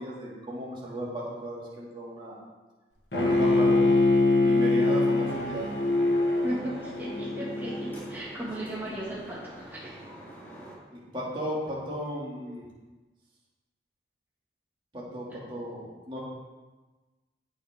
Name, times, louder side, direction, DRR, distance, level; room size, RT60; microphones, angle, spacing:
voice 1, 0.0-2.4 3.1-3.9 4.4-5.7 10.9-12.7 14.9-16.2, equal, 30° right, -6 dB, 2.4 m, -35 dB
Bowed string instrument, 3.1-8.2, left 2 dB, 80° left, 1.6 m, -24 dB
sound 1, 5.3-10.7, right 1 dB, 10° left, 3.4 m, -46 dB
voice 2, 6.4-9.9, right 1 dB, 10° right, -7 dB, 1.9 m, -36 dB
16.0 x 5.9 x 3.7 m, 1.2 s
head